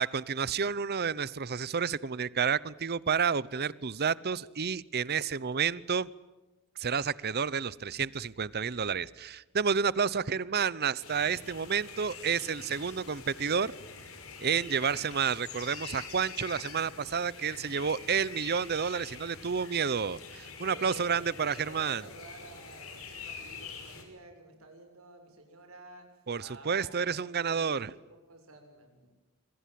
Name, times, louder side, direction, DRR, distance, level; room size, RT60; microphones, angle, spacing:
voice 1, 0.0-6.1 6.8-13.7 14.4-22.0 26.3-27.9, right 6 dB, 50° right, 20 dB, 0.8 m, -30 dB
sound 1, 11.0-24.0, left 5 dB, 80° left, 5.9 m, -45 dB
voice 2, 20.6-21.3 21.6-26.1 26.4-29.1, right 2 dB, 75° right, 4 dB, 6.8 m, -51 dB
26.5 x 24.5 x 7.6 m, 1.1 s
head